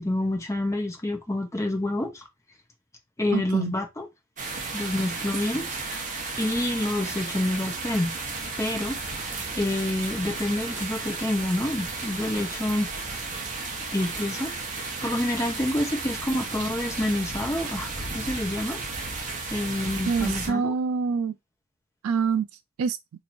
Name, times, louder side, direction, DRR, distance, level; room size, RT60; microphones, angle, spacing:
voice 1, 0.0-2.2 3.2-4.1 4.7-6.1 6.4-8.1 8.6-9.0 9.6-12.9 13.9-18.8 19.5-20.7, left 1 dB, 15° left, 0.7 m, -28 dB
voice 2, 3.3-3.7 20.1-21.3 22.0-22.5 22.8-23.0, right 5 dB, 70° right, 0.3 m, -25 dB
sound 1, 4.4-20.5, right 3 dB, 35° right, 0.9 m, -34 dB
3.0 x 2.6 x 4.2 m
head